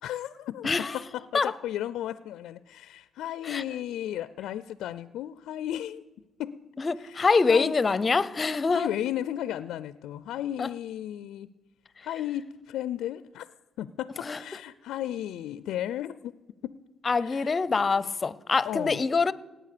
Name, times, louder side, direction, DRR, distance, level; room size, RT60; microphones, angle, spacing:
voice 1, 0.0-6.0 6.4-6.6 7.0-7.8 8.7-11.5 12.0-13.5 13.8-16.3 16.6-16.7 17.2-17.5 18.6-19.0, left 12 dB, 85° left, 0.4 m, -34 dB
voice 2, 0.6-1.0 1.3-1.5 3.4-3.6 6.8-8.9 10.6-10.7 14.2-14.4 17.0-19.3, left 4 dB, 35° left, 0.6 m, -25 dB
Keyboard (musical), 7.5-9.5, right 1 dB, 85° right, 5.2 m, -55 dB
18.0 x 8.9 x 6.7 m
cardioid pair, 90°, 0 cm